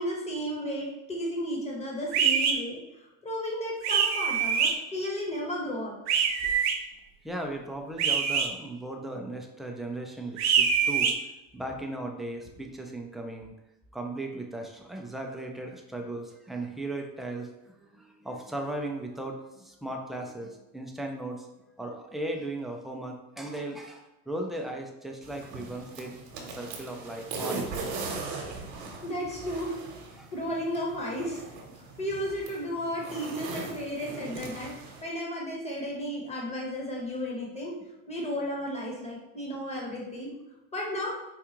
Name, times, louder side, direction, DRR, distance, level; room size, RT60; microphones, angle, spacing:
voice 1, 0.0-2.8 3.2-5.9 29.0-29.8 30.3-31.4 31.8-37.7 38.1-40.3 40.7-41.1, equal, 15° left, -3 dB, 1.2 m, -33 dB
sound 1, 2.1-2.5 3.8-4.7 6.1-6.7 8.0-8.5 10.4-11.1, right 7 dB, 45° right, 0.6 m, -24 dB
voice 2, 7.2-11.1 11.5-13.5 13.9-21.5 21.8-26.2 26.4-28.0 28.8-29.0 29.4-29.5 30.2-30.3, right 1 dB, ahead, 1 dB, 0.4 m, -37 dB
sound 2, 25.2-35.0, right 3 dB, 65° right, 1.0 m, -39 dB
4.6 x 2.4 x 2.9 m, 0.94 s
supercardioid pair, 110°, 39 cm